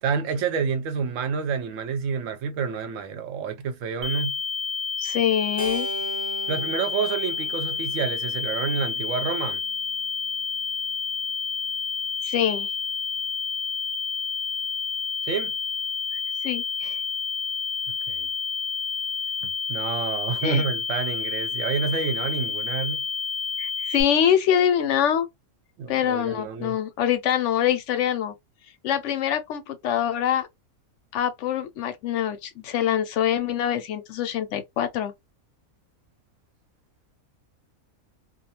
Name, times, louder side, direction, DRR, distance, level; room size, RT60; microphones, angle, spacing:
voice 1, 0.0-4.4 6.5-9.6 15.2-15.5 18.1-18.3 19.4-23.0 25.8-26.8, right 6 dB, 70° right, 0.9 m, -28 dB
sound 1, 4.0-24.0, left 5 dB, 85° right, 0.3 m, -29 dB
voice 2, 5.0-5.9 12.2-12.7 16.4-17.0 20.4-20.6 23.6-25.3 25.9-28.3 28.8-30.5 31.1-35.1, left 9 dB, 65° left, 0.8 m, -24 dB
Keyboard (musical), 5.6-10.0, right 3 dB, 20° right, 0.4 m, -39 dB
2.4 x 2.3 x 2.7 m
omnidirectional pair, 1.5 m